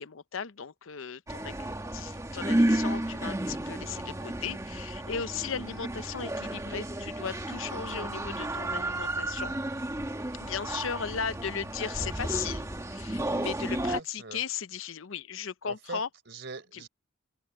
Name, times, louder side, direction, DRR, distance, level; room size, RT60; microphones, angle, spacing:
voice 1, 0.0-9.5 10.4-16.1 16.7-16.8, left 7 dB, 75° left, 0.7 m, -37 dB
sound 1, 1.3-14.0, right 1 dB, 15° right, 1.4 m, -32 dB
voice 2, 13.9-14.4 15.6-16.9, right 3 dB, 60° right, 4.3 m, -43 dB
open air
head